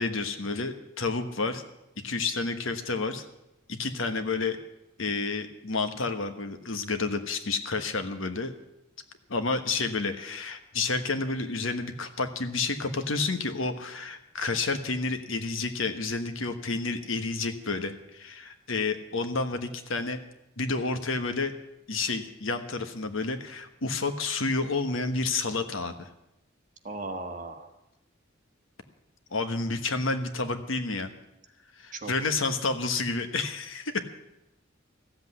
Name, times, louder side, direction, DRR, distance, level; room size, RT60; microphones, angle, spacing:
voice 1, 0.0-1.6 2.0-3.2 3.7-4.6 5.0-8.5 9.3-20.2 20.6-21.5 21.9-26.1 29.3-31.1 31.8-34.0, left 3 dB, 75° left, 8 dB, 1.3 m, -30 dB
voice 2, 26.8-27.7 31.9-32.1, right 2 dB, 40° right, 4 dB, 1.6 m, -36 dB
14.5 x 8.0 x 9.7 m, 0.89 s
head